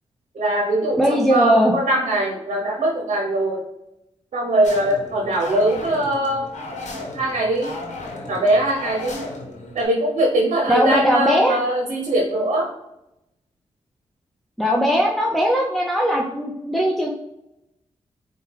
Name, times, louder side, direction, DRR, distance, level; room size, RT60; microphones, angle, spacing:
voice 1, 0.3-3.7 4.3-6.8 7.1-7.7 8.3-9.2 9.7-12.7, right 1 dB, 70° right, 0 dB, 0.8 m, -21 dB
voice 2, 1.0-1.7 10.7-11.6 14.6-17.1, equal, ahead, -2 dB, 0.6 m, -19 dB
sound 1, 4.6-9.9, left 2 dB, 75° left, 1.0 m, -35 dB
4.5 x 2.2 x 3.3 m, 0.87 s
cardioid pair, 45°, 12 cm